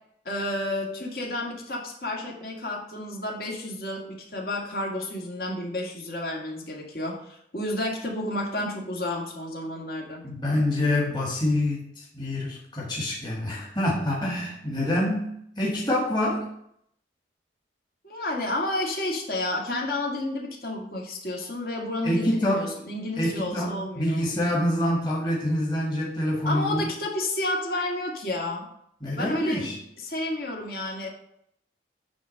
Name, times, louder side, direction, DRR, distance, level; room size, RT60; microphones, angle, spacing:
voice 1, 0.2-10.2 18.0-24.2 26.5-28.6 29.1-29.6 30.0-31.1, left 1 dB, 50° left, -1 dB, 2.2 m, -31 dB
voice 2, 10.2-16.5 22.0-22.7 23.2-26.9 29.0-29.8, left 1 dB, 25° left, -4 dB, 1.9 m, -26 dB
9.6 x 3.7 x 6.5 m, 0.71 s
head